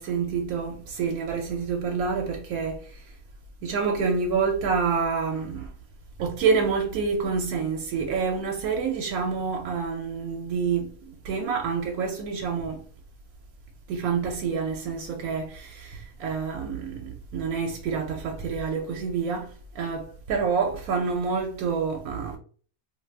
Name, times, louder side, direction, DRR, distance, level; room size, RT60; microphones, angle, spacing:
voice 1, 0.0-3.0 3.6-5.7 6.2-12.8 13.9-22.4, right 5 dB, 80° right, 1.0 m, -28 dB
2.6 x 2.3 x 3.3 m
omnidirectional pair, 1.5 m